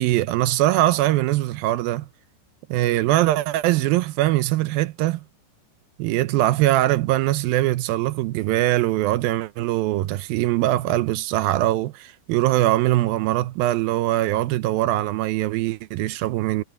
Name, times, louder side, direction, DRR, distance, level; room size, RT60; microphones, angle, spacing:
voice 1, 0.0-2.1 2.7-5.2 6.0-16.6, right 15 dB, 80° right, 2.3 m, -22 dB
omnidirectional pair, 4.6 m